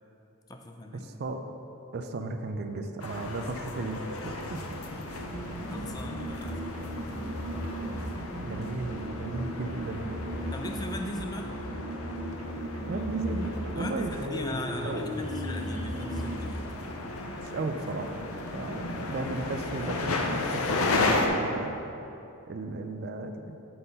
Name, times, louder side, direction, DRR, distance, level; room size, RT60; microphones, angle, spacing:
voice 1, 0.5-1.1 5.7-6.9 10.5-11.5 13.7-16.7, left 2 dB, 20° left, 4 dB, 0.3 m, -39 dB
voice 2, 1.0-1.4 1.9-4.8 8.4-10.2 12.9-14.1 14.8-15.1 17.4-18.2 18.5-21.8 22.5-23.6, right 2 dB, 50° right, 6 dB, 0.4 m, -35 dB
sound 1, 3.0-21.3, left 2 dB, 85° left, 0.7 m, -34 dB
sound 2, 5.1-17.0, equal, 70° right, 1.4 m, -36 dB
7.7 x 4.1 x 5.3 m, 2.9 s
head